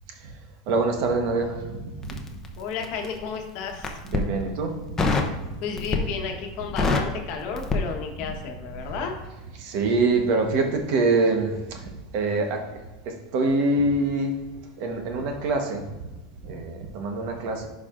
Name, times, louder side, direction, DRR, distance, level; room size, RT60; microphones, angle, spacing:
voice 1, 0.7-1.9 4.0-4.7 5.4-5.5 8.7-8.8 9.6-11.9 12.1-12.6 13.3-14.3 14.8-15.8 16.4-17.7, right 3 dB, 55° right, 3 dB, 1.1 m, -24 dB
Crackle, 2.0-3.2 3.7-4.3 5.0-5.4 5.8-6.2 6.5-8.5 8.7-8.9, left 3 dB, 15° left, 0.8 m, -26 dB
voice 2, 2.6-4.0 5.6-9.2, left 6 dB, 50° left, 3 dB, 1.2 m, -32 dB
10.5 x 4.8 x 2.5 m, 1.2 s
supercardioid pair, 145°, 3 cm